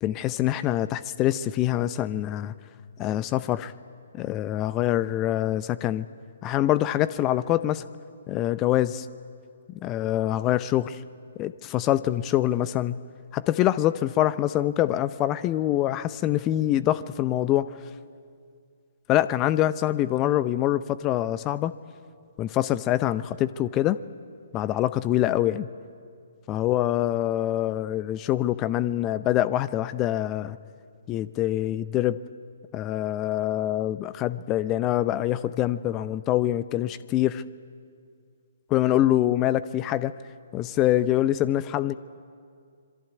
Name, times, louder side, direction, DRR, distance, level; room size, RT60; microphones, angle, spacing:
voice 1, 0.0-2.5 3.0-3.7 4.1-6.1 6.4-7.8 8.3-9.1 9.8-11.0 11.4-13.0 13.3-17.7 19.1-21.7 22.4-24.0 24.5-25.7 26.5-30.6 31.1-32.2 32.7-37.4 38.7-40.1 40.5-42.0, left 13 dB, 25° left, 16 dB, 0.6 m, -25 dB
26.0 x 23.0 x 9.3 m, 2.2 s
figure-of-eight pair, 130°, 0 cm